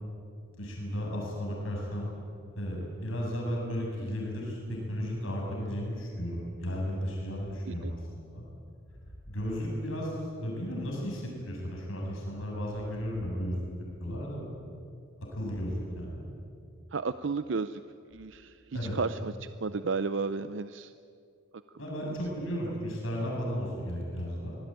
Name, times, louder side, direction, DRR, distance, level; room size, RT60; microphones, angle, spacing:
voice 1, 0.5-2.1 2.5-8.0 8.3-8.4 9.3-13.6 14.0-14.5 15.3-16.2 18.7-19.0 21.8-24.6, equal, 80° left, -2 dB, 7.9 m, -34 dB
voice 2, 16.9-17.8 18.1-19.3 19.6-20.9, right 4 dB, 60° right, 12 dB, 0.6 m, -33 dB
26.5 x 20.5 x 9.2 m, 2.5 s
head